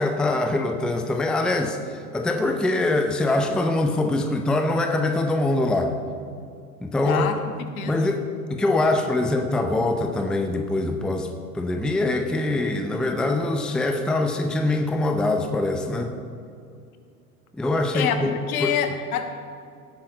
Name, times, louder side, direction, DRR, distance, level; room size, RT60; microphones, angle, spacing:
voice 1, 0.0-5.9 6.8-7.3 7.8-11.3 11.5-16.1 17.5-18.8, left 2 dB, ahead, 5 dB, 0.5 m, -23 dB
voice 2, 7.0-7.4 7.8-8.1 17.9-19.5, left 8 dB, 65° left, 7 dB, 1.4 m, -27 dB
16.5 x 8.7 x 3.9 m, 2.4 s
hypercardioid pair, 95°, 45 cm